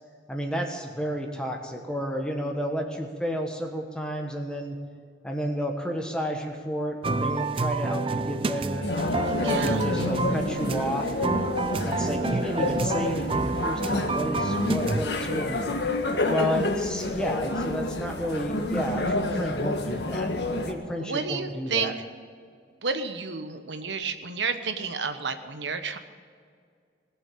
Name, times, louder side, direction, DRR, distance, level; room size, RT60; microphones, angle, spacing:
voice 1, 0.3-4.8 5.2-8.8 9.4-11.1 11.8-15.8 16.3-20.3 20.6-21.9, equal, 5° left, 2 dB, 1.3 m, -31 dB
sound 1, 7.0-15.1, right 3 dB, 30° right, 0.4 m, -29 dB
sound 2, 8.8-20.7, left 2 dB, 70° left, 1.5 m, -29 dB
voice 2, 9.4-9.8 21.0-21.9 22.8-26.0, right 5 dB, 85° right, 8 dB, 1.1 m, -30 dB
19.5 x 7.2 x 8.5 m, 2.1 s
head